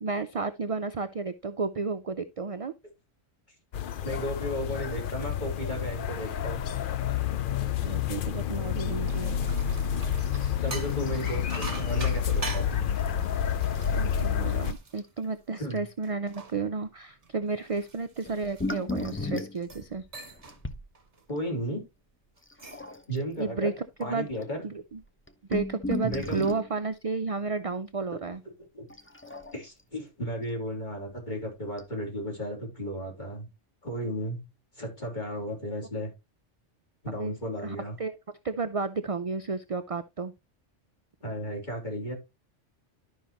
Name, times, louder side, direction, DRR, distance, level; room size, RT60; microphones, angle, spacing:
voice 1, 0.0-2.7 7.6-9.4 14.0-20.0 23.4-24.3 24.6-25.0 25.5-28.4 37.2-37.3 37.6-38.2 38.4-40.3, right 4 dB, 55° right, 10 dB, 0.4 m, -32 dB
sound 1, 3.7-14.7, left 8 dB, 55° left, 0.6 m, -29 dB
voice 2, 4.0-6.6 10.6-12.8 15.6-15.8 21.3-21.8 23.1-23.7 24.0-24.6 26.0-26.4 28.7-28.9 29.5-33.5 33.8-34.4 34.7-36.1 37.0-38.0 41.2-42.1, equal, 40° left, 0 dB, 3.3 m, -34 dB
sound 2, 8.8-15.6 16.0-19.1 19.6-19.9 20.1-20.6 21.0-21.2 22.4-22.9, right 3 dB, 30° right, 1.3 m, -43 dB
sound 3, 13.7-14.3 14.6-14.7 15.0-15.2 15.7-15.8 18.3-20.8 22.5-23.2 24.0-24.1 24.3-24.4 25.0-26.7 28.9-29.8 31.1-31.2 31.8-31.9, left 2 dB, 15° left, 0.6 m, -35 dB
12.0 x 5.5 x 2.9 m, 0.23 s
omnidirectional pair, 1.3 m